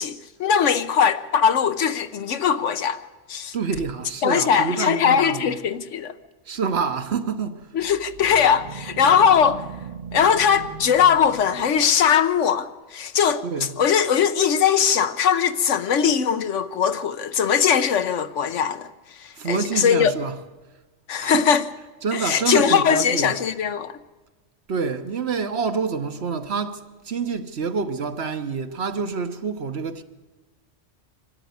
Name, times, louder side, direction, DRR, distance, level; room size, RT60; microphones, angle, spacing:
voice 1, 0.0-3.0 3.3-3.5 4.2-6.1 7.7-9.6 10.1-18.9 19.2-20.1 21.1-21.6 22.1-23.9, left 7 dB, 80° left, 1.2 m, -20 dB
voice 2, 3.5-5.5 6.5-7.7 13.4-13.7 19.4-20.4 21.2-21.4 22.0-23.3 24.7-30.0, right 5 dB, 60° right, 1.3 m, -27 dB
sound 1, 7.8-12.2, right 7 dB, 45° right, 0.9 m, -39 dB
24.5 x 13.0 x 9.5 m
omnidirectional pair, 1.2 m